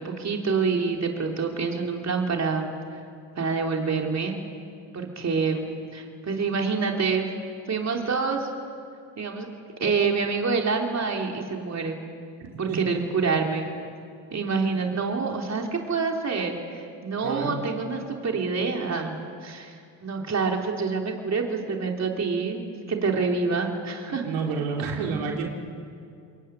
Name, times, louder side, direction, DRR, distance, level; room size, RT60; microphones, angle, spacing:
voice 1, 0.0-3.0 3.4-4.4 4.9-5.7 5.9-7.3 7.7-8.5 9.2-9.5 9.8-12.0 12.6-13.7 14.3-19.8 20.0-22.6 22.9-24.2, right 4 dB, 35° right, 2 dB, 3.6 m, -27 dB
voice 2, 17.2-17.6 24.2-25.5, right 5 dB, 80° right, 0 dB, 3.9 m, -28 dB
23.5 x 22.0 x 9.4 m, 2.3 s
supercardioid pair, 80°, 44 cm